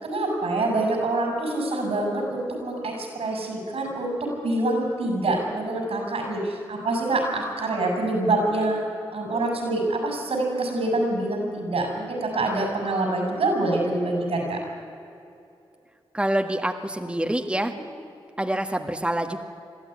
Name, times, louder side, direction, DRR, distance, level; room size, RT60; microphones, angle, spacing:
voice 1, 0.0-8.8 9.1-14.6 17.5-17.7, right 2 dB, 80° right, 2 dB, 6.4 m, -26 dB
voice 2, 16.1-17.7 18.4-19.4, right 1 dB, 10° right, 5 dB, 1.6 m, -26 dB
22.0 x 13.5 x 9.9 m, 2.6 s
cardioid pair, 45°, 10 cm